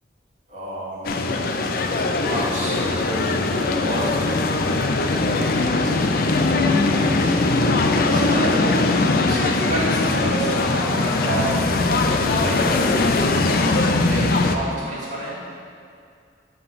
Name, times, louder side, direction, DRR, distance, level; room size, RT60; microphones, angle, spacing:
voice 1, 0.5-1.3 1.7-3.3 3.8-4.2 5.3-6.0 6.3-7.3 8.1-8.7 9.3-11.6 12.0-13.0 13.3-13.6 14.1-15.3, right 1 dB, 45° right, -8 dB, 2.1 m, -30 dB
sound 1, 1.0-14.5, left 3 dB, 55° left, 0.4 m, -20 dB
7.7 x 3.9 x 6.7 m, 2.3 s
head